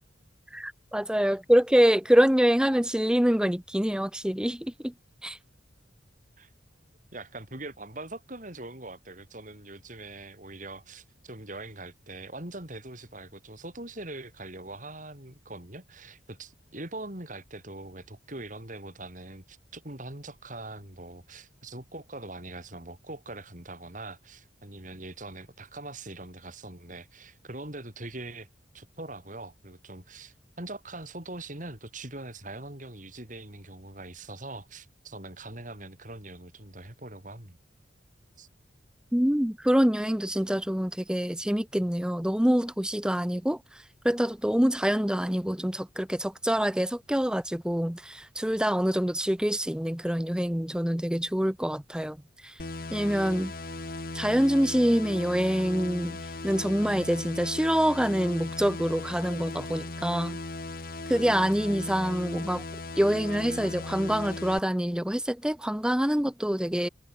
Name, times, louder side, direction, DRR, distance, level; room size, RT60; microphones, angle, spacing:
voice 1, 0.5-4.9 5.2-5.4 39.1-43.6 44.0-52.2 52.4-52.5 52.9-53.5 54.1-60.4 61.1-62.6 63.0-66.9, equal, 5° right, 0.7 m, -25 dB
voice 2, 7.1-28.5 28.7-37.6 38.4-38.5, right 2 dB, 40° right, 4.8 m, -42 dB
sound 1, 52.6-64.6, left 2 dB, 50° left, 1.6 m, -37 dB
head